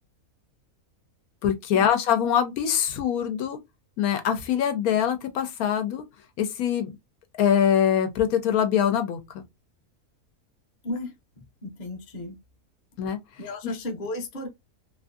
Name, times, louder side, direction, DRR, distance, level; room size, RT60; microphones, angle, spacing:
voice 1, 1.4-3.6 4.0-6.0 6.4-6.9 7.4-9.2 13.0-13.2, left 9 dB, 80° left, 1.1 m, -23 dB
voice 2, 10.8-12.4 13.4-14.5, left 2 dB, 40° left, 0.7 m, -35 dB
3.0 x 2.5 x 2.3 m
omnidirectional pair, 1.5 m